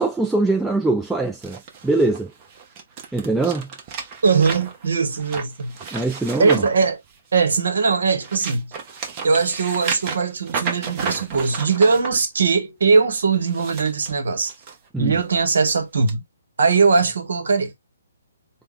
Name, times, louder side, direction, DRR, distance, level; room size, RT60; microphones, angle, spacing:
voice 1, 0.0-2.3 3.1-3.7 5.9-6.6 14.9-15.2, right 2 dB, 5° right, 0.3 m, -22 dB
sound 1, 1.4-7.6 8.0-12.1 13.3-14.7 15.2-15.4 16.1-16.2, right 5 dB, 30° right, 0.9 m, -33 dB
voice 2, 4.2-5.8 6.4-7.0 7.3-8.7 9.2-14.5 15.0-16.2 16.6-17.7, right 4 dB, 70° right, 1.0 m, -20 dB
3.5 x 2.1 x 3.5 m
figure-of-eight pair, 140°, 0 cm